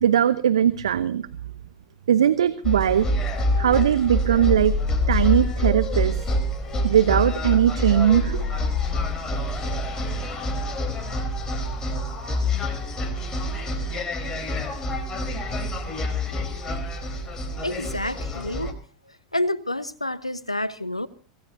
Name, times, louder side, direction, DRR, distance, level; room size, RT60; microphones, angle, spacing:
voice 1, 0.0-1.3 2.1-3.1 3.6-4.7 5.1-6.2 6.8-8.4, right 9 dB, 70° right, 0.8 m, -20 dB
sound 1, 2.6-18.7, left 1 dB, 20° left, 4.0 m, -26 dB
voice 2, 17.6-18.7 19.3-21.1, left 1 dB, 90° left, 1.1 m, -28 dB
25.0 x 17.5 x 2.7 m
figure-of-eight pair, 85°, 3 cm